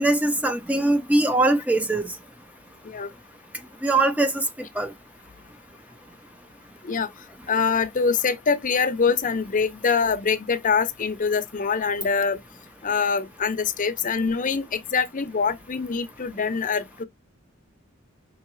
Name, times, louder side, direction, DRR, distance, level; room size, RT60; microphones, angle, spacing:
voice 1, 0.0-2.1 3.8-4.4 4.8-4.9, right 2 dB, 5° right, 0.5 m, -21 dB
voice 2, 7.5-12.4 12.8-17.0, left 5 dB, 40° left, 0.6 m, -24 dB
5.5 x 2.9 x 3.1 m
head